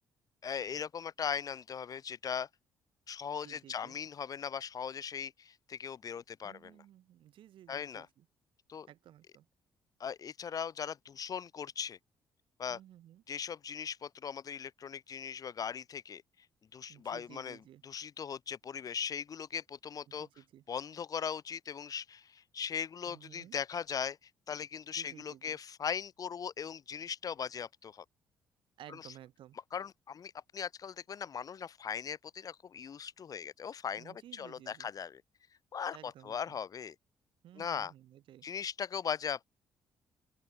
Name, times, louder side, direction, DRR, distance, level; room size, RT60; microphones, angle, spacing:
voice 1, 0.4-2.5 3.1-6.7 7.7-8.1 8.7-8.9 10.0-12.0 12.6-12.8 13.3-16.2 16.7-17.6 17.8-20.3 20.7-24.2 24.5-28.0 28.9-29.0 29.7-35.2 35.7-37.0 37.6-37.9 38.4-39.4, left 7 dB, 40° left, 0.6 m, -39 dB
voice 2, 3.4-4.0 6.4-8.3 8.9-9.5 12.7-13.2 16.9-17.8 20.1-20.6 23.1-23.6 24.9-25.6 28.8-29.6 34.0-34.9 35.9-36.6 37.4-38.5, right 12 dB, 60° right, 5.8 m, -55 dB
open air
figure-of-eight pair, 45°, 10 cm